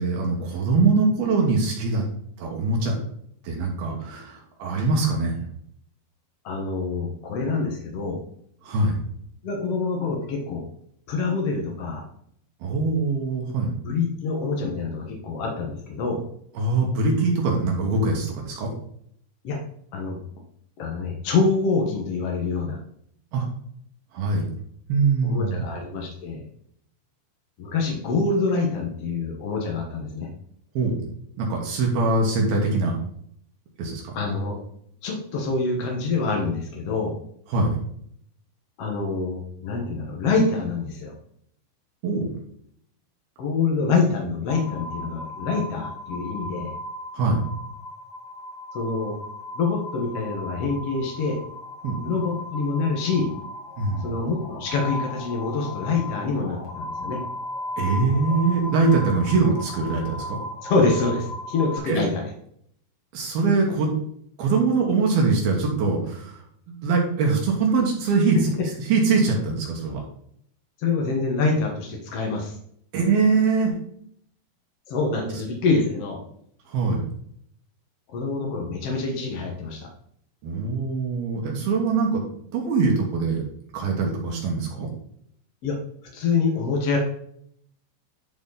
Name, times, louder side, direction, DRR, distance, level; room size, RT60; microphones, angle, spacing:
voice 1, 0.0-2.0 2.4-3.0 3.4-5.4 8.6-9.0 12.6-13.7 16.6-18.7 23.3-23.5 24.1-24.5 24.9-25.7 30.7-31.1 31.4-32.9 33.8-34.1 37.5-37.7 42.0-42.3 47.1-47.4 51.8-52.0 53.8-54.1 57.8-60.4 61.9-62.0 63.1-63.9 64.4-66.4 66.7-68.4 68.9-70.0 72.9-73.7 76.7-77.0 80.4-82.2 82.5-83.4 83.7-84.9, right 4 dB, 65° right, -1 dB, 3.3 m, -23 dB
voice 2, 6.4-8.2 9.4-10.6 11.1-12.0 13.8-16.2 19.4-19.6 19.9-20.2 20.8-22.8 25.2-26.4 27.6-30.3 34.1-34.6 35.0-37.2 38.8-41.1 43.4-46.7 48.7-49.1 49.5-51.4 52.0-53.3 54.0-57.2 60.6-62.3 70.8-72.6 74.9-76.2 78.1-79.9 85.6-85.8 86.1-87.0, left 4 dB, 70° left, 0 dB, 1.4 m, -26 dB
sound 1, 44.5-61.8, left 1 dB, 45° left, 1.7 m, -36 dB
11.5 x 4.9 x 4.1 m, 0.67 s
omnidirectional pair, 4.9 m